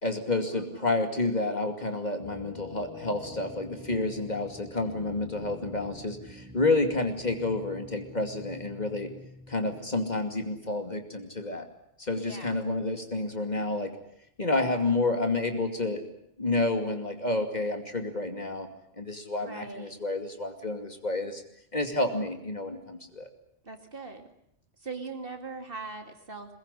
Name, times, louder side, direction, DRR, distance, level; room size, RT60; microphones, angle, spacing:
voice 1, 0.0-9.1 9.5-11.7 12.0-13.9 14.4-16.1 16.4-18.7 19.0-21.4 21.7-23.3, left 2 dB, 35° left, 5 dB, 2.7 m, -29 dB
voice 2, 0.5-1.0 12.2-12.6 19.4-20.0 23.6-24.3 24.8-26.5, right 4 dB, 50° right, 5 dB, 2.8 m, -41 dB
sound 1, 2.2-10.9, left 3 dB, 5° right, 5.3 m, -47 dB
22.5 x 20.5 x 9.9 m, 0.74 s
omnidirectional pair, 1.2 m